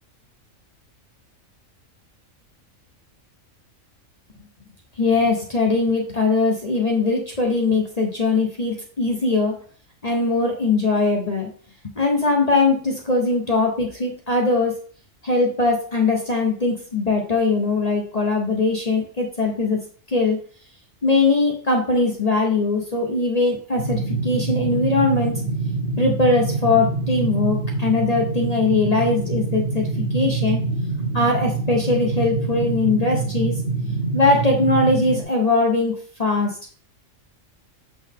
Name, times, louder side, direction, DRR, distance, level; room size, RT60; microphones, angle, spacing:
voice 1, 5.0-9.5 10.0-11.5 12.0-14.8 15.2-19.8 20.1-20.4 21.0-25.4 26.0-29.9 30.1-30.6 31.1-33.6 34.1-36.8, left 3 dB, 30° left, 1 dB, 1.1 m, -21 dB
sound 1, 23.8-35.2, right 3 dB, 45° right, 1.2 m, -25 dB
7.4 x 4.4 x 3.6 m, 0.43 s
omnidirectional pair, 1.4 m